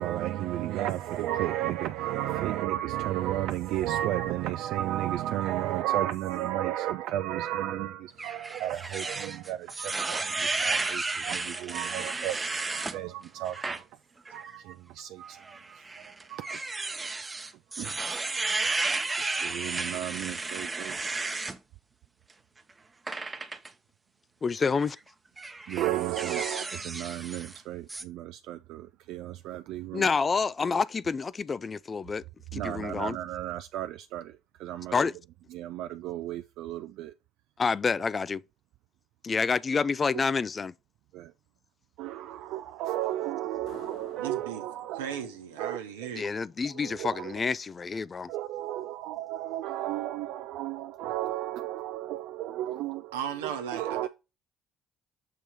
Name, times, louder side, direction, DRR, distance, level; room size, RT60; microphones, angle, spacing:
voice 1, 0.0-13.9 14.3-16.6 17.8-18.2 19.4-21.1 25.7-30.1 32.5-34.9 35.5-37.1 41.1-41.3 42.0-45.2 45.6-45.8 46.7-47.3 48.3-53.2 53.4-54.1, right 13 dB, 70° right, 0.3 m, -33 dB
sound 1, 8.2-13.0 13.5-13.8 14.3-14.4 15.4-21.6 23.1-23.7 24.7-24.9 25.4-27.6 27.9-28.0, right 3 dB, 25° right, 0.8 m, -33 dB
voice 2, 24.4-25.0 29.9-32.2 32.5-33.2 34.9-35.1 37.6-38.4 39.2-40.7 46.1-48.3, left 5 dB, 35° left, 0.3 m, -28 dB
sound 2, 43.7-47.0, left 5 dB, 70° left, 1.6 m, -54 dB
voice 3, 44.2-44.7 44.9-46.3 53.1-54.1, right 8 dB, 90° right, 0.9 m, -36 dB
6.8 x 3.0 x 5.1 m
hypercardioid pair, 55°, 0 cm